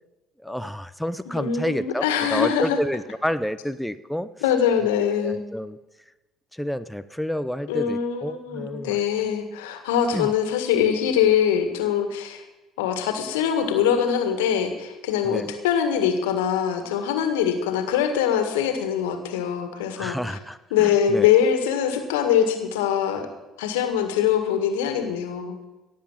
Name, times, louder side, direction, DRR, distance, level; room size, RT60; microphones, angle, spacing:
voice 1, 0.4-4.3 5.2-5.8 6.5-9.0 10.1-10.3 15.2-15.5 20.0-21.3, equal, 5° left, 12 dB, 0.7 m, -29 dB
voice 2, 1.4-2.8 4.4-5.4 7.7-12.4 12.8-20.4 20.7-23.3 23.6-25.6, left 8 dB, 80° left, 7 dB, 1.8 m, -23 dB
17.0 x 7.5 x 7.4 m, 1.1 s
hypercardioid pair, 55°, 0 cm